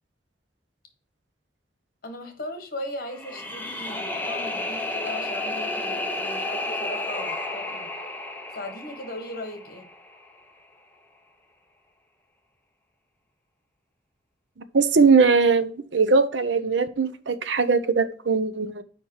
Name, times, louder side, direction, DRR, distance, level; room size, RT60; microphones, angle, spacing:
voice 1, 2.0-7.9 8.5-9.9, left 1 dB, 55° left, 1.5 m, -38 dB
sound 1, 3.1-10.2, left 2 dB, 10° left, 0.8 m, -32 dB
voice 2, 14.7-18.8, right 4 dB, 80° right, 0.7 m, -20 dB
5.1 x 4.7 x 5.6 m
head